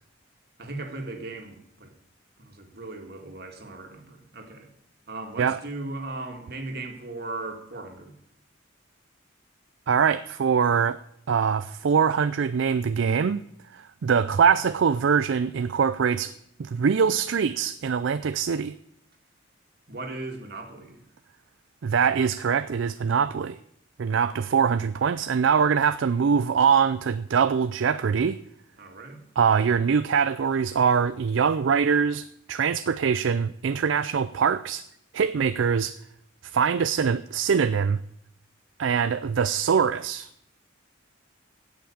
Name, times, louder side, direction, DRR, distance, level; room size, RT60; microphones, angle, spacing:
voice 1, 0.6-1.9 2.4-4.7 5.1-8.1 19.9-21.0 28.8-29.2, right 2 dB, 50° right, 2.2 m, -37 dB
voice 2, 9.9-11.0 11.3-13.4 13.7-16.3 16.6-18.7 21.8-23.6 24.0-28.4 29.4-34.8 35.1-36.0 36.4-38.0 38.8-40.3, right 6 dB, 70° right, 0.4 m, -23 dB
16.5 x 5.9 x 8.6 m
head